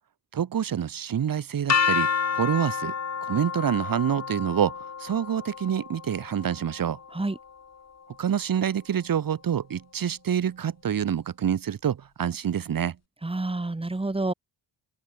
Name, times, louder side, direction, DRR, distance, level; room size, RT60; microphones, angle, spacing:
voice 1, 0.3-2.9 3.2-4.7 5.0-7.0 8.2-13.0, right 9 dB, 50° right, 3.5 m, -27 dB
sound 1, 1.7-7.6, left 6 dB, 35° left, 5.5 m, -30 dB
voice 2, 13.2-14.3, right 2 dB, 10° right, 5.8 m, -28 dB
open air
cardioid pair, 140°, 44 cm